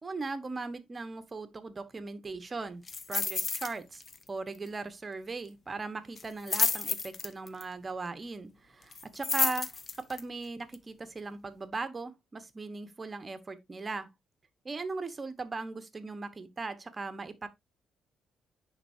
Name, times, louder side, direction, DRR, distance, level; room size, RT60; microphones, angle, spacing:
voice 1, 0.0-4.0 4.3-9.8 10.1-14.1 14.6-17.5, right 3 dB, 30° right, 1.2 m, -38 dB
sound 1, 2.9-3.7 4.0-4.3 4.5-4.6 6.2-7.6 8.9-10.2 10.7-10.8, left 4 dB, 40° left, 0.7 m, -30 dB
10.0 x 4.1 x 2.8 m
cardioid pair, 90°, 0 cm